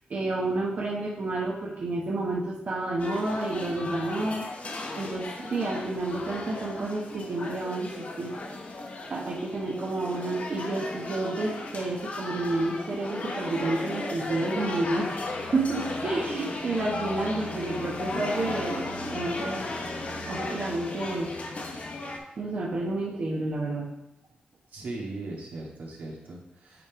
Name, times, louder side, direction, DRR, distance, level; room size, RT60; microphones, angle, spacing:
voice 1, 0.1-4.5 4.9-8.3 9.1-18.8 19.1-19.6 20.3-21.3 22.4-23.9, right 2 dB, 55° right, -4 dB, 1.1 m, -30 dB
sound 1, 3.0-22.2, left 2 dB, 50° left, 1.1 m, -36 dB
voice 2, 24.7-26.9, right 2 dB, 80° right, -3 dB, 1.9 m, -38 dB
8.3 x 3.6 x 4.7 m, 0.86 s
cardioid pair, 95°, 3 cm